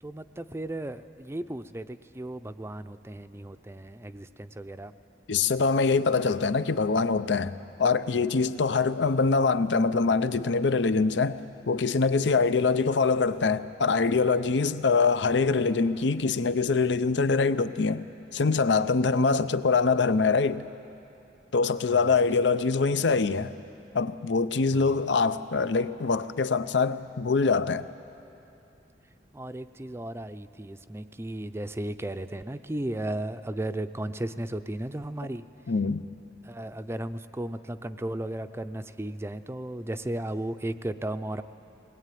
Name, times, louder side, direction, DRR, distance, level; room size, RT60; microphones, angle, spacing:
voice 1, 0.0-4.9 21.9-22.0 24.7-25.0 29.3-35.4 36.4-41.4, right 1 dB, 15° right, 0.5 m, -35 dB
voice 2, 5.3-11.4 11.7-20.6 21.5-23.5 23.9-27.9 35.7-36.1, left 4 dB, 70° left, 0.6 m, -24 dB
22.0 x 20.0 x 9.2 m
head